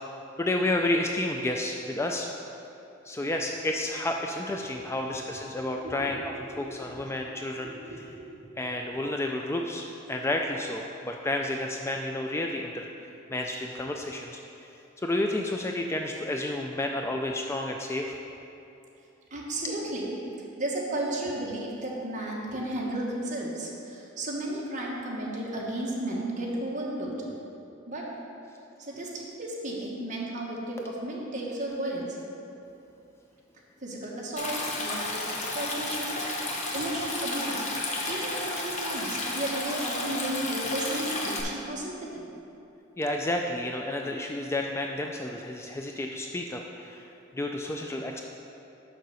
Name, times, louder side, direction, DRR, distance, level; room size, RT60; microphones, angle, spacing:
voice 1, 0.4-2.3 3.0-7.9 8.6-14.7 15.0-18.2 19.6-19.7 30.8-30.9 43.0-48.2, left 1 dB, 15° left, 2 dB, 0.3 m, -31 dB
voice 2, 7.6-8.5 19.3-20.1 20.6-27.1 27.9-28.1 28.8-32.1 33.8-35.2 35.5-36.2 36.7-37.6 38.1-42.2, right 1 dB, 40° right, -3 dB, 1.4 m, -33 dB
Stream, 34.4-41.4, left 2 dB, 35° left, 1.0 m, -32 dB
6.7 x 5.6 x 6.3 m, 2.8 s
head